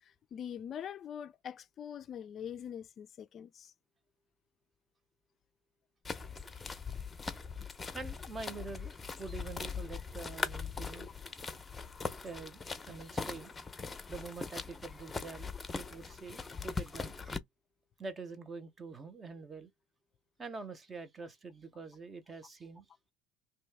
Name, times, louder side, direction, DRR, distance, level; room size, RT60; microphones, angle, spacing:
voice 1, 0.0-3.7 16.5-16.6, left 9 dB, 45° left, 0.3 m, -44 dB
sound 1, 6.0-17.4, left 4 dB, 20° left, 0.7 m, -41 dB
voice 2, 7.9-11.1 12.1-13.5 14.1-17.2 18.0-19.7 20.4-22.9, right 4 dB, 25° right, 0.8 m, -46 dB
3.0 x 2.8 x 3.4 m
supercardioid pair, 100°, 0 cm